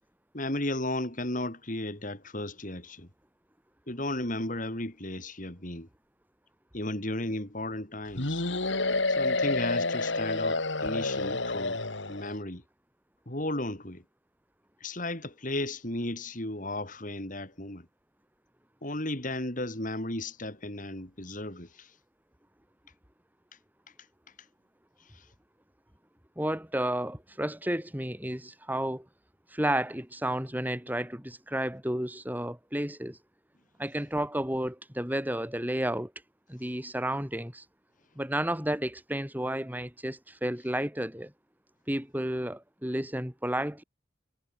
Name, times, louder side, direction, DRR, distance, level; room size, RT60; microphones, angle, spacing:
voice 1, 0.3-3.1 3.9-5.9 6.7-8.4 9.1-11.8 12.1-12.6 13.3-14.0 14.8-17.9 18.8-21.9 25.1-25.2, left 1 dB, 40° left, 4.4 m, -34 dB
sound 1, 8.2-12.3, left 3 dB, 70° left, 3.5 m, -29 dB
voice 2, 26.4-29.1 29.5-33.2 33.8-36.1 36.5-37.6 38.2-41.3 41.9-43.8, right 1 dB, 10° right, 4.3 m, -32 dB
head